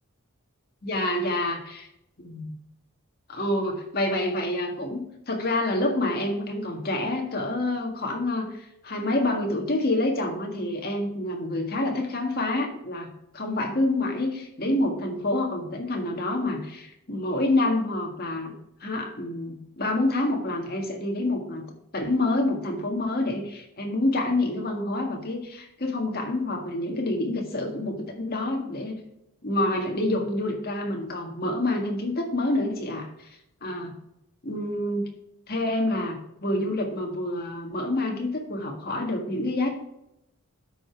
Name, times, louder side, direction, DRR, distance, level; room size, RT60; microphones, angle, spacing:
voice 1, 0.8-1.9 2.2-2.5 3.3-13.1 13.3-18.5 18.8-21.6 21.9-28.9 29.4-33.3 33.6-33.9 34.4-35.1 35.5-39.7, left 2 dB, 45° left, 1 dB, 1.8 m, -27 dB
12.0 x 5.1 x 4.6 m, 0.81 s
head